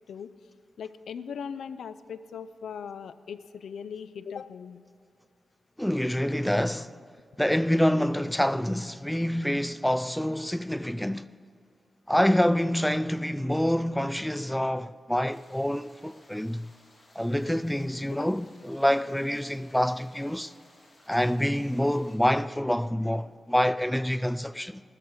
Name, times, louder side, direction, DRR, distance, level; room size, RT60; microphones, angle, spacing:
voice 1, 0.8-4.8 18.2-18.3, left 7 dB, 85° left, 0.5 m, -39 dB
voice 2, 5.8-6.9 7.4-11.3 12.1-16.7 17.2-20.5 21.1-24.8, equal, 5° left, 0.3 m, -26 dB
sound 1, 15.3-22.2, left 1 dB, 35° left, 3.1 m, -58 dB
15.0 x 13.5 x 4.7 m
cardioid pair, 80°, 0 cm